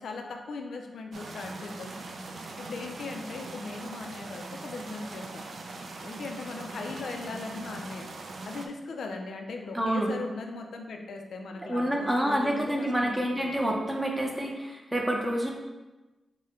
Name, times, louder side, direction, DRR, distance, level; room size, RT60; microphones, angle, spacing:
voice 1, 0.0-2.0 2.6-5.4 6.0-8.1 8.5-13.6, left 3 dB, 85° left, 3 dB, 0.4 m, -39 dB
sound 1, 1.1-8.7, right 3 dB, 65° right, 0.4 m, -41 dB
voice 2, 9.7-10.1 11.6-15.5, equal, 10° right, 0 dB, 0.7 m, -28 dB
5.5 x 2.2 x 3.6 m, 1.1 s
wide cardioid pair, 115°, 0 cm